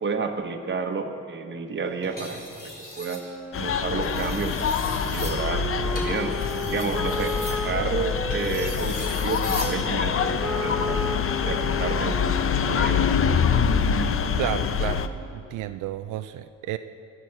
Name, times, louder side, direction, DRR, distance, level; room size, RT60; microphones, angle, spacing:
voice 1, 0.0-4.7 5.1-10.3 10.6-13.4, right 4 dB, 40° right, 6 dB, 1.3 m, -31 dB
sound 1, 2.0-3.3 3.9-9.8 11.2-11.5, left 1 dB, 30° left, 3.8 m, -39 dB
Wind instrument woodwind instrument, 3.0-8.9 9.6-15.5, equal, 5° right, 1.0 m, -35 dB
sound 2, 3.5-15.1, left 6 dB, 45° left, 0.7 m, -25 dB
voice 2, 14.4-15.1 15.3-16.8, right 13 dB, 85° right, 10 dB, 0.5 m, -31 dB
16.0 x 12.0 x 4.7 m, 2.6 s
cardioid pair, 90°, 30 cm